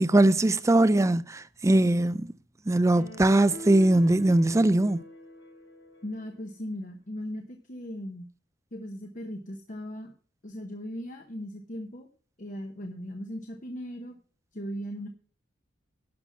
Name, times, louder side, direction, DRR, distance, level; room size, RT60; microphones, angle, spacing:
voice 1, 0.0-2.3 2.7-5.0, right 1 dB, 15° right, 0.4 m, -21 dB
sound 1, 2.9-6.4, left 1 dB, 90° left, 5.0 m, -44 dB
voice 2, 6.0-8.3 8.7-10.1 10.4-12.1 12.4-14.2 14.5-15.1, equal, 40° left, 0.9 m, -38 dB
11.5 x 5.9 x 5.9 m
head